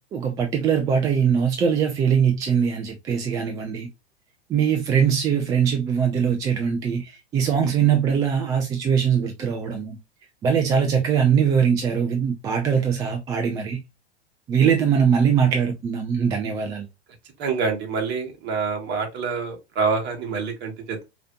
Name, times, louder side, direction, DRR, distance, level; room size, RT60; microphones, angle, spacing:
voice 1, 0.1-3.9 4.5-10.0 10.4-13.8 14.5-16.9, right 7 dB, 10° right, 0.3 m, -21 dB
voice 2, 17.4-21.1, right 5 dB, 35° right, 1.7 m, -26 dB
4.8 x 2.9 x 2.3 m
figure-of-eight pair, 95°, 32 cm